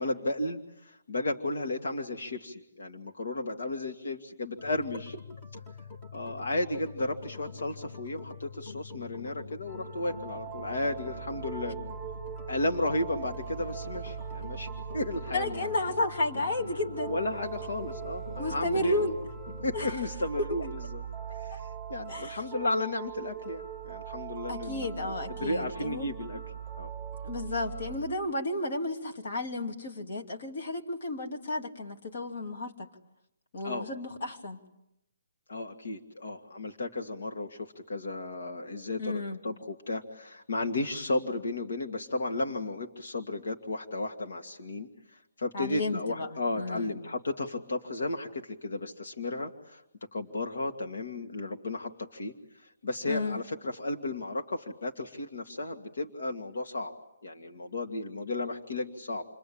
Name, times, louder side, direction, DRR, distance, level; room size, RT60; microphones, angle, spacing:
voice 1, 0.0-5.2 6.1-11.8 12.5-15.8 17.1-19.1 19.6-21.0 21.3-26.4 26.8-26.9 27.5-27.6 33.6-33.9 35.5-49.8 50.1-56.9 57.2-59.3, left 2 dB, 70° left, 3 dB, 2.2 m, -34 dB
sound 1, 4.6-19.9, left 5 dB, 20° left, 2.0 m, -45 dB
sound 2, 9.7-28.0, right 9 dB, 5° right, 4.5 m, -41 dB
voice 2, 15.3-17.1 18.4-19.2 19.7-19.9 22.1-22.4 24.5-26.1 27.2-32.9 33.5-34.6 39.0-39.4 45.5-46.3 46.6-46.9 53.1-53.4, left 2 dB, 45° left, 2 dB, 2.9 m, -32 dB
28.5 x 23.5 x 8.7 m, 0.85 s
hypercardioid pair, 180°, 0 cm